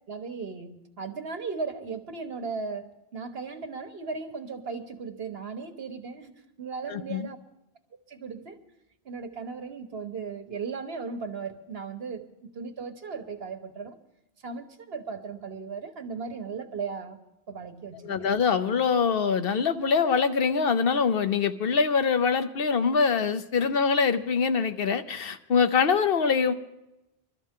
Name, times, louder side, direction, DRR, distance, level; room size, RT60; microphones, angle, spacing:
voice 1, 0.1-7.4 8.1-8.6 9.0-14.0 14.4-17.2 17.5-18.2, right 5 dB, 75° right, 1.5 m, -37 dB
voice 2, 6.9-7.3 18.0-26.5, left 5 dB, 65° left, 1.0 m, -24 dB
22.5 x 13.0 x 3.7 m
omnidirectional pair, 1.0 m